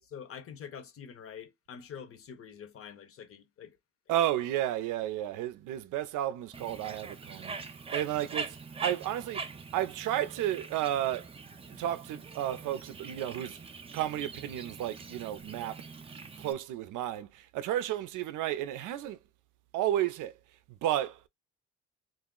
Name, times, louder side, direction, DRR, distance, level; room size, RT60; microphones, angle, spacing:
voice 1, 0.1-3.8, left 7 dB, 45° left, 0.7 m, -46 dB
voice 2, 4.1-11.3 11.8-15.8 16.4-19.2 19.7-20.4 20.7-21.3, right 12 dB, 85° right, 0.5 m, -32 dB
Bird, 6.5-16.5, right 5 dB, 20° right, 0.4 m, -43 dB
2.5 x 2.0 x 3.6 m
cardioid pair, 90°, 30 cm